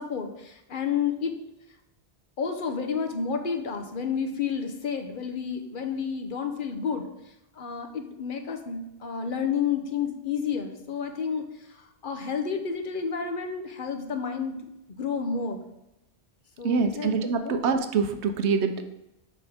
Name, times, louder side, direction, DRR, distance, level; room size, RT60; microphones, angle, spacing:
voice 1, 0.0-1.3 2.4-15.6 16.6-17.1 17.4-17.6, left 6 dB, 50° left, 5 dB, 0.9 m, -31 dB
voice 2, 16.6-18.8, right 5 dB, 80° right, 8 dB, 1.0 m, -25 dB
7.3 x 5.2 x 3.5 m, 0.89 s
omnidirectional pair, 1.1 m